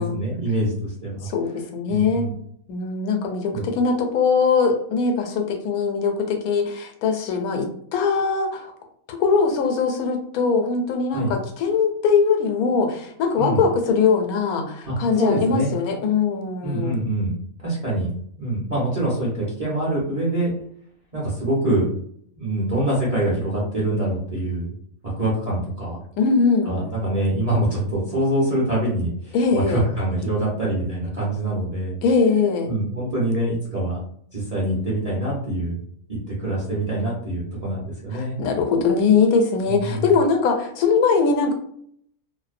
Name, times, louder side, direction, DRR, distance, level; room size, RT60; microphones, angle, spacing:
voice 1, 0.0-1.3 1.9-2.3 3.5-3.6 11.1-11.3 13.4-13.6 14.8-15.7 16.6-17.3 17.6-20.5 21.1-21.9 22.4-24.7 25.2-26.0 26.6-32.0 32.7-34.0 34.3-35.8 36.1-38.4 39.7-40.1, right 1 dB, 35° right, -6 dB, 0.6 m, -25 dB
voice 2, 1.2-2.2 2.7-8.7 9.1-17.0 26.2-26.8 29.3-29.8 32.0-32.7 38.1-41.5, left 5 dB, 80° left, 4 dB, 1.0 m, -21 dB
2.6 x 2.0 x 2.4 m, 0.65 s
omnidirectional pair, 1.5 m